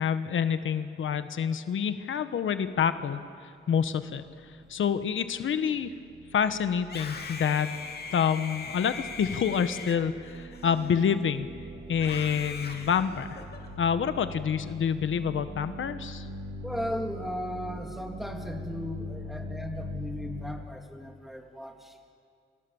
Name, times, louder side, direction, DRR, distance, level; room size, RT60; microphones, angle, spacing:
voice 1, 0.0-4.2 4.7-5.9 6.3-7.8 8.1-11.5 11.9-13.4 13.8-16.3, left 7 dB, 85° left, 10 dB, 1.2 m, -27 dB
sound 1, 4.3-20.6, equal, 80° right, 2.6 m, -43 dB
Screaming, 6.8-11.3 11.9-13.7, left 5 dB, 55° left, 2.7 m, -41 dB
voice 2, 16.6-22.1, equal, ahead, 3 dB, 3.0 m, -36 dB
30.0 x 27.5 x 7.2 m, 2.3 s
wide cardioid pair, 115°, 20 cm